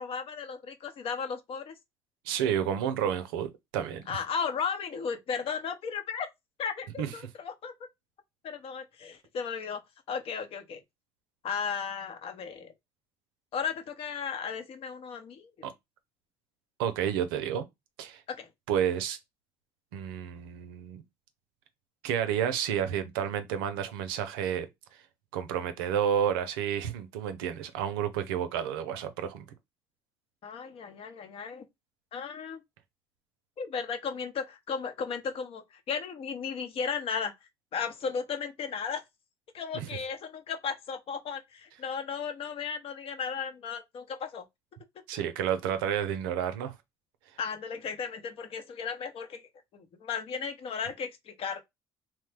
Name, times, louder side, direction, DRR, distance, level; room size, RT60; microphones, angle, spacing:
voice 1, 0.0-1.7 4.1-6.3 6.6-7.7 8.4-9.8 10.1-10.8 11.4-12.7 13.5-15.7 18.4-18.5 30.4-31.6 32.1-32.6 33.6-37.3 37.7-39.0 39.5-44.4 47.4-49.4 49.7-51.6, left 6 dB, 55° left, 0.8 m, -35 dB
voice 2, 2.2-4.2 7.0-7.1 15.6-15.7 16.8-17.7 18.0-18.2 18.7-19.2 19.9-21.0 22.0-24.7 25.3-29.5 39.7-39.9 45.1-46.7, right 9 dB, 85° right, 0.5 m, -30 dB
3.0 x 2.1 x 3.3 m
supercardioid pair, 70°, 12 cm